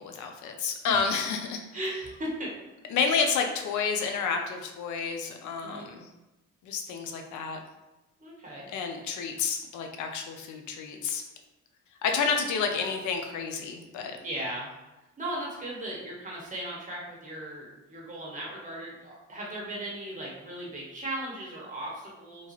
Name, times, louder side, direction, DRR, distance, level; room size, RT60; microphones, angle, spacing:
voice 1, 0.0-1.6 2.9-6.1 6.6-7.6 8.7-11.2 12.0-14.2, left 5 dB, 75° left, 4 dB, 0.5 m, -30 dB
voice 2, 1.7-2.6 5.6-5.9 8.2-8.7 14.2-14.7 15.2-22.5, right 1 dB, 25° right, -4 dB, 1.1 m, -37 dB
3.0 x 2.3 x 3.0 m, 1.0 s
cardioid pair, 90°, 30 cm